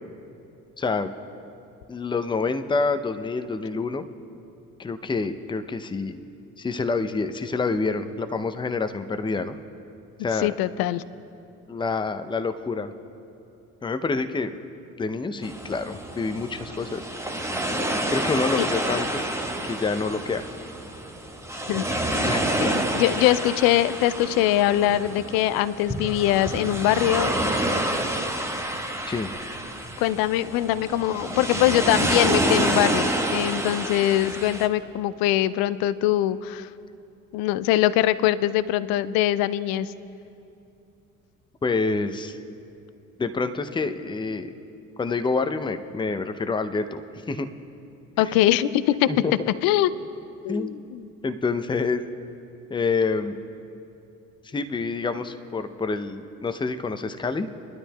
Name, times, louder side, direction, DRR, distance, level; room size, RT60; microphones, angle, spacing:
voice 1, 0.8-1.1 1.9-4.0 4.8-6.2 6.6-9.6 10.2-10.5 11.7-12.9 13.8-14.5 15.0-17.1 18.1-19.2 19.6-20.4 22.2-22.4 29.1-29.3 41.6-42.4 43.2-44.6 45.0-47.0 47.3-47.5 48.2-48.3 49.1-49.3 50.5-50.8 51.2-52.0 52.7-53.3 54.4-57.5, left 4 dB, 10° left, 9 dB, 0.5 m, -27 dB
voice 2, 10.4-11.0 18.6-18.7 21.7-22.3 22.6-27.4 30.0-36.7 37.3-39.9 48.2-49.1 49.6-49.9 50.4-51.0, left 13 dB, 55° left, 16 dB, 0.5 m, -22 dB
sound 1, 15.4-34.7, right 1 dB, 5° right, 1.0 m, -28 dB
21.5 x 12.5 x 2.3 m, 2.7 s
figure-of-eight pair, 45°, 43 cm